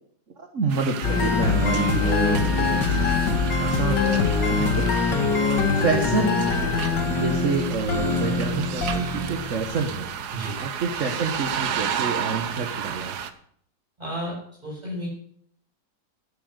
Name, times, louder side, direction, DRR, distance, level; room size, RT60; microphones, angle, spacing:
voice 1, 0.4-4.8 5.7-6.5 7.1-10.1 10.6-13.2, right 4 dB, 50° right, 4 dB, 1.5 m, -28 dB
sound 1, 0.7-13.3, right 8 dB, 70° right, 1.5 m, -33 dB
sound 2, 1.0-10.2, left 4 dB, 80° left, 2.5 m, -23 dB
voice 2, 14.0-14.4 14.6-15.1, right 1 dB, 25° right, -6 dB, 7.4 m, -32 dB
11.5 x 9.0 x 6.7 m, 0.64 s
omnidirectional pair, 1.8 m